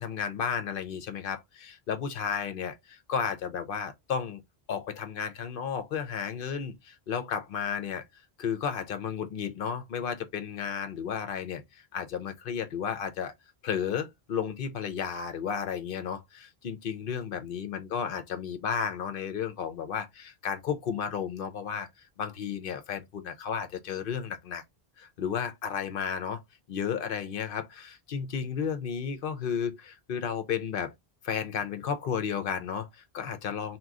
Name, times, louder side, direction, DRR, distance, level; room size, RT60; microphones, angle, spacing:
voice 1, 0.0-4.4 4.7-8.0 8.4-13.3 13.6-21.9 22.2-24.6 25.0-26.4 26.7-30.9 31.2-33.8, left 7 dB, 60° left, 0.7 m, -33 dB
2.9 x 2.3 x 3.5 m
omnidirectional pair, 1.1 m